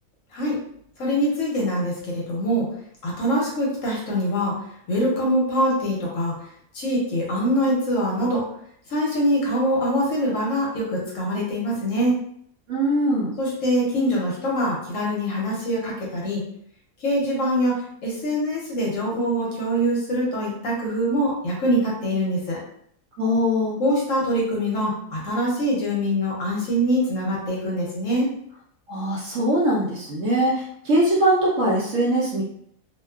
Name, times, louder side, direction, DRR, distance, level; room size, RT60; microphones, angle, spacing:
voice 1, 1.0-2.7 3.0-4.5 4.9-6.3 6.7-8.5 8.9-12.1 13.4-16.4 17.0-22.6 23.8-28.3, equal, 65° left, -4 dB, 0.9 m, -24 dB
voice 2, 12.7-13.3 23.2-23.8 28.9-32.4, right 1 dB, 65° right, -4 dB, 0.8 m, -21 dB
2.6 x 2.2 x 2.2 m, 0.68 s
omnidirectional pair, 1.7 m